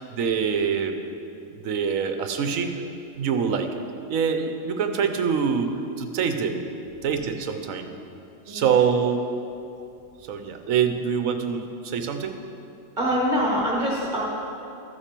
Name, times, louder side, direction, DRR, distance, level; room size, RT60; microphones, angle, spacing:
voice 1, 0.1-1.0 1.5-2.7 3.2-3.8 4.1-6.6 7.0-7.9 8.5-9.2 10.3-12.4, right 6 dB, 80° right, 7 dB, 1.2 m, -25 dB
voice 2, 8.5-8.8 13.0-14.2, equal, 35° right, -6 dB, 1.6 m, -25 dB
13.5 x 7.3 x 5.2 m, 2.8 s
omnidirectional pair, 1.4 m